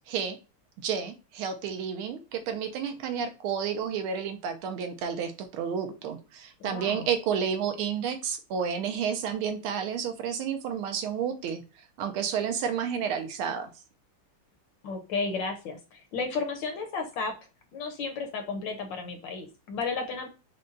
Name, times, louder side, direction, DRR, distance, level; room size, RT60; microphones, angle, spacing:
voice 1, 0.1-0.4 0.8-11.6 12.0-13.7, right 7 dB, 75° right, 7 dB, 1.5 m, -31 dB
voice 2, 6.6-7.1 14.8-17.3 17.7-20.3, left 4 dB, 70° left, 5 dB, 1.2 m, -33 dB
5.1 x 2.2 x 3.8 m, 0.32 s
omnidirectional pair, 2.4 m